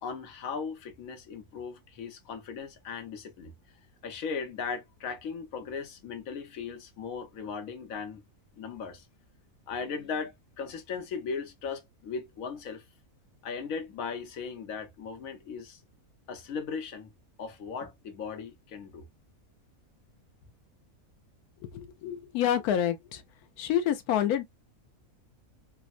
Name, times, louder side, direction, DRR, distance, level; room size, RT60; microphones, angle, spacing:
voice 1, 0.0-3.5 4.0-8.2 8.6-9.1 9.7-12.8 13.4-15.8 16.3-17.1 17.4-19.1, left 5 dB, 70° left, 1.2 m, -37 dB
voice 2, 21.6-23.2 23.6-24.4, left 10 dB, 90° left, 1.1 m, -28 dB
3.4 x 2.1 x 2.4 m
omnidirectional pair, 1.5 m